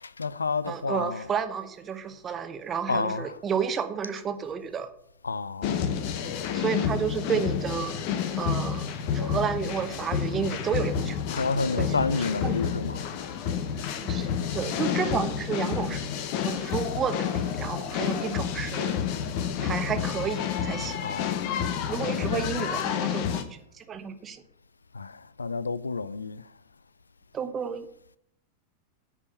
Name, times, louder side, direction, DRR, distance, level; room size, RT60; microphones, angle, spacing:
voice 1, 0.0-1.3 2.9-3.4 5.2-6.1 11.3-13.2 21.0-22.9 24.9-26.5, left 4 dB, 75° left, 0.3 m, -31 dB
voice 2, 0.7-4.9 6.5-8.0 8.4-11.2 11.8-12.6 14.0-16.0 16.4-19.0 19.6-21.0 21.9-24.4 27.3-27.9, right 7 dB, 25° right, 0.9 m, -31 dB
sound 1, 5.6-23.4, left 8 dB, 45° left, 0.9 m, -29 dB
9.6 x 5.0 x 6.7 m
figure-of-eight pair, 90°, 0 cm